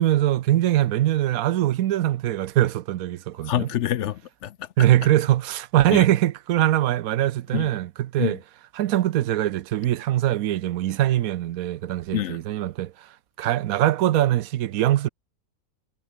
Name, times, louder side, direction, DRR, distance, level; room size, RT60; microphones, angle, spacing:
voice 1, 0.0-3.7 4.8-8.4 8.8-12.9 13.4-15.1, right 13 dB, 90° right, 1.1 m, -22 dB
voice 2, 3.4-4.9 5.9-6.1 7.5-7.7 8.2-8.4 12.1-12.4, left 11 dB, 65° left, 0.9 m, -27 dB
omnidirectional pair, 1.4 m